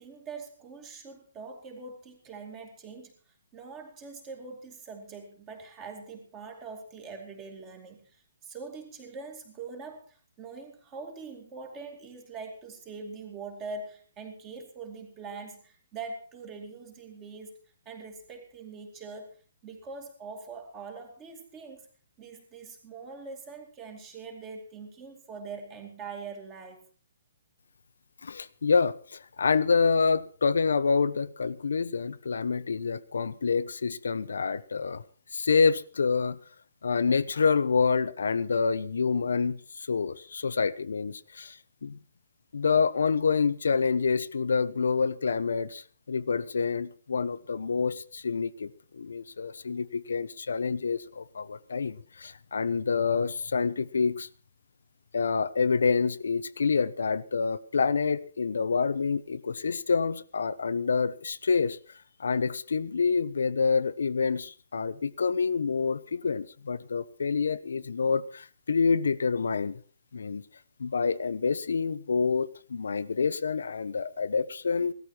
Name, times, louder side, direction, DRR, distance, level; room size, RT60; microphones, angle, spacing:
voice 1, 0.0-3.1 3.5-17.6 17.9-21.9 22.2-26.9, right 4 dB, 15° right, 2.5 m, -43 dB
voice 2, 28.2-35.0 35.3-36.4 36.8-42.0 42.5-54.3 55.1-61.8 62.2-69.8 70.1-70.4 70.8-74.9, left 5 dB, 90° left, 0.9 m, -27 dB
17.5 x 13.5 x 4.5 m
hypercardioid pair, 175°, 0 cm